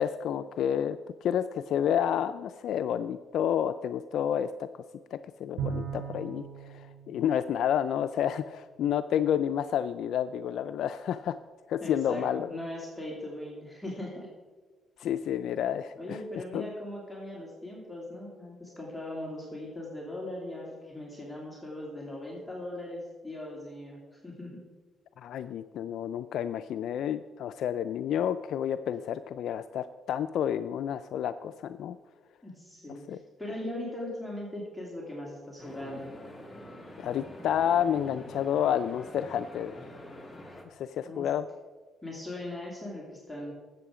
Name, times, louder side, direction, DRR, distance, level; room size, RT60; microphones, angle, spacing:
voice 1, 0.0-4.7 5.1-11.4 11.7-12.5 15.0-16.2 16.5-16.7 25.2-32.0 32.9-33.2 37.0-39.8 40.7-41.5, left 9 dB, 75° left, 11 dB, 0.3 m, -30 dB
Bowed string instrument, 5.6-8.2, right 7 dB, 60° right, 3.0 m, -39 dB
voice 2, 11.8-14.3 16.0-24.6 32.4-36.1 41.0-41.3 42.0-43.5, left 1 dB, 5° left, -4 dB, 2.7 m, -39 dB
sound 1, 35.6-40.6, left 1 dB, 20° left, 1.8 m, -46 dB
12.5 x 8.0 x 5.0 m, 1.4 s
cardioid pair, 90°, 0 cm